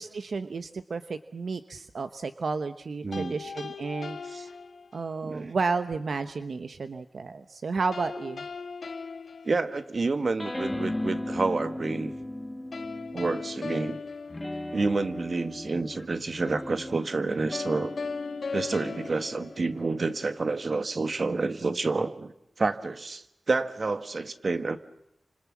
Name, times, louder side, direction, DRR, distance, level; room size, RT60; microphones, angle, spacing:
voice 1, 0.0-4.2 4.9-8.4, right 4 dB, 75° right, 10 dB, 1.0 m, -32 dB
voice 2, 3.0-3.4 4.2-4.5 5.2-5.5 9.4-12.1 13.1-14.0 14.7-17.9 18.5-22.3 22.6-24.8, right 3 dB, 55° right, 10 dB, 1.5 m, -29 dB
sound 1, 3.1-5.3 7.9-10.3 12.7-15.2 17.5-20.3, left 4 dB, 75° left, 1.4 m, -38 dB
sound 2, 10.4-13.8 14.3-21.1, left 1 dB, 15° left, 1.8 m, -38 dB
30.0 x 26.5 x 7.4 m, 0.80 s
wide cardioid pair, 110°, 0 cm